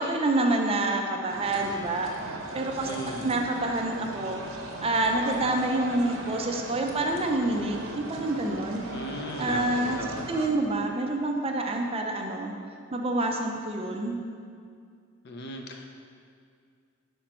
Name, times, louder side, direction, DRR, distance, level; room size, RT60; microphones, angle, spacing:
voice 1, 0.0-2.1 2.5-2.9 3.2-4.4 4.8-8.8 9.4-12.5 12.9-14.2, right 2 dB, 30° right, 2 dB, 0.5 m, -27 dB
sound 1, 1.3-10.5, right 2 dB, 75° right, 0.8 m, -39 dB
voice 2, 2.9-3.3 8.9-10.3 15.2-15.8, left 1 dB, 55° left, 3 dB, 0.6 m, -36 dB
5.0 x 4.4 x 5.4 m, 2.2 s
head